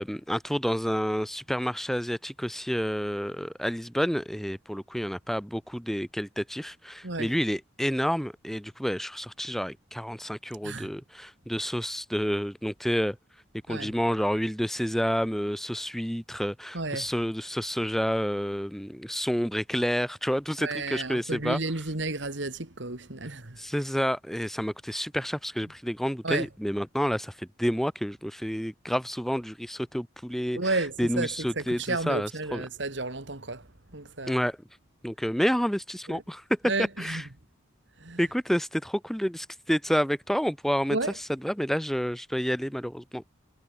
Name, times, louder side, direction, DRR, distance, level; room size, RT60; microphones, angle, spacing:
voice 1, 0.0-13.2 13.7-21.6 23.6-30.6 31.0-32.6 34.3-34.6 35.0-36.6 37.0-37.2 38.2-41.0 41.4-43.2, equal, ahead, 1.2 m, -29 dB
voice 2, 7.0-7.4 10.6-10.9 13.7-13.9 16.7-17.1 20.6-23.6 26.2-26.5 30.6-34.4 36.1-36.2 36.6-37.2 38.0-38.2 40.9-41.2, right 3 dB, 60° right, 2.2 m, -32 dB
head